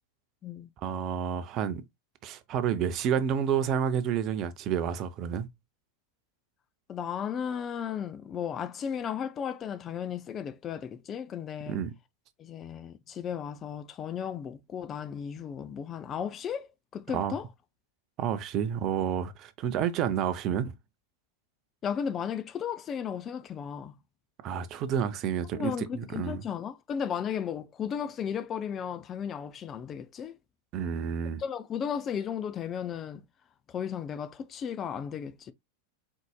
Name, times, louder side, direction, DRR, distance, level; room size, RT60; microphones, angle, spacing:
voice 1, 0.8-1.8 2.2-5.5 11.7-11.9 17.1-17.3 18.2-20.7 24.4-26.4 30.7-31.4, right 8 dB, 35° right, 0.6 m, -30 dB
voice 2, 6.9-11.8 12.4-17.5 21.8-23.9 25.5-30.3 31.4-33.2 33.7-35.5, left 8 dB, 25° left, 0.5 m, -35 dB
4.6 x 4.0 x 2.2 m
figure-of-eight pair, 90°, 0 cm